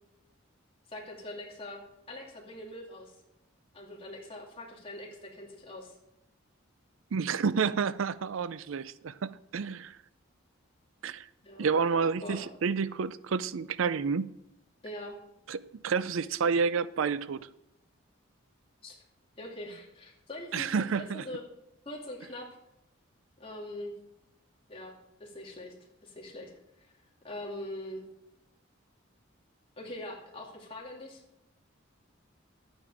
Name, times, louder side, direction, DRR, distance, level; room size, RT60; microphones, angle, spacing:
voice 1, 0.9-1.8 2.1-3.1 3.7-5.9 11.4-11.8 12.2-12.5 14.8-15.2 18.8-19.0 19.4-21.4 21.8-22.5 23.4-23.9 24.7-24.9 25.2-25.7 26.0-26.5 26.8-26.9 27.2-28.0 29.8-31.2, left 1 dB, 30° left, 2.8 m, -42 dB
voice 2, 7.1-10.0 11.0-11.3 11.6-14.3 15.5-17.4 20.5-21.2, right 5 dB, 80° right, 0.5 m, -29 dB
12.0 x 9.0 x 5.0 m
head